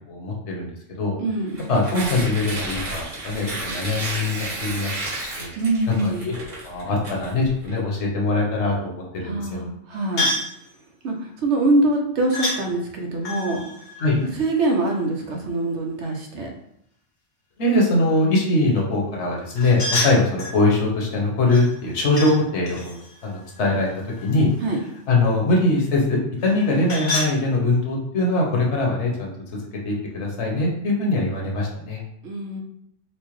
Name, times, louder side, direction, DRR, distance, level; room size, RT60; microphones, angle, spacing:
voice 1, 0.1-0.7 1.0-1.1 1.7-5.5 5.9-9.6 14.0-14.2 17.6-23.9 24.2-24.5 25.1-29.3 29.8-32.0, left 2 dB, 65° left, -2 dB, 1.1 m, -22 dB
voice 2, 1.2-1.6 5.6-6.3 9.2-10.3 11.0-13.6 14.4-16.5 24.6-24.8 32.2-32.6, right 2 dB, 70° right, 1 dB, 0.9 m, -24 dB
Tearing, 1.5-7.7, right 2 dB, 35° right, 1.1 m, -32 dB
sound 1, 10.2-10.6 12.3-12.6 13.2-15.0 19.5-20.6 21.5-22.4 22.6-24.5 26.4-27.3, left 2 dB, 45° left, 0.8 m, -29 dB
4.3 x 2.1 x 3.0 m, 0.74 s
omnidirectional pair, 1.3 m